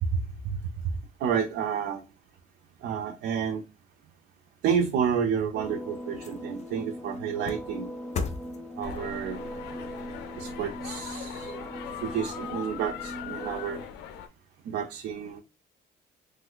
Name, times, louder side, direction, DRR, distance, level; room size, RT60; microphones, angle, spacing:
voice 1, 0.1-0.6 1.2-2.0 2.8-3.6 4.6-7.9 8.8-9.4 10.3-11.5 12.0-13.8 14.6-15.4, right 7 dB, 70° right, 3 dB, 0.5 m, -30 dB
sound 1, 5.2-11.7 12.1-12.2, left 4 dB, 40° left, 0.5 m, -41 dB
sound 2, 5.5-13.9, equal, ahead, 0.6 m, -40 dB
sound 3, 8.8-14.3, left 8 dB, 90° left, 0.5 m, -40 dB
3.1 x 2.0 x 3.8 m, 0.28 s
cardioid pair, 110°, 17 cm